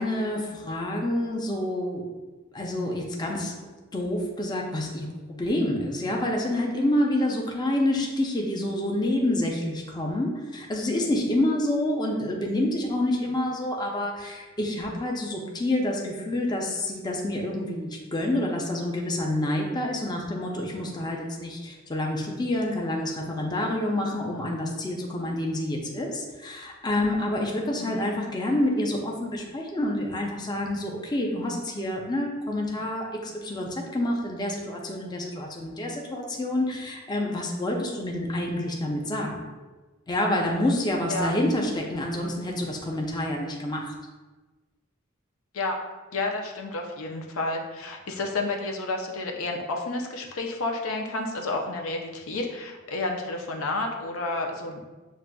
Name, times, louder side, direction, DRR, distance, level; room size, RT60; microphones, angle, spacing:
voice 1, 0.0-2.0 2.5-3.5 3.9-39.4 40.1-43.9, left 1 dB, 20° left, 0 dB, 0.5 m, -28 dB
voice 2, 46.1-54.8, left 2 dB, 90° left, 2 dB, 0.6 m, -30 dB
7.2 x 2.5 x 2.2 m, 1.2 s
head